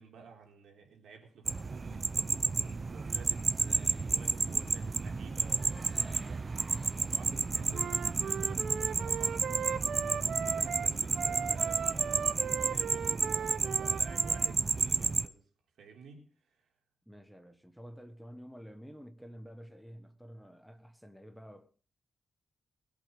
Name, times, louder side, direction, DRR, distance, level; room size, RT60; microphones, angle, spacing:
voice 1, 0.0-15.4 15.8-16.3, right 5 dB, 80° right, 3.8 m, -52 dB
sound 1, 1.5-15.3, right 4 dB, 25° right, 0.6 m, -31 dB
Wind instrument woodwind instrument, 7.7-14.5, right 7 dB, 55° right, 0.8 m, -38 dB
voice 2, 17.1-21.7, equal, ahead, 1.1 m, -50 dB
20.5 x 8.3 x 5.3 m
wide cardioid pair, 165°, 0 cm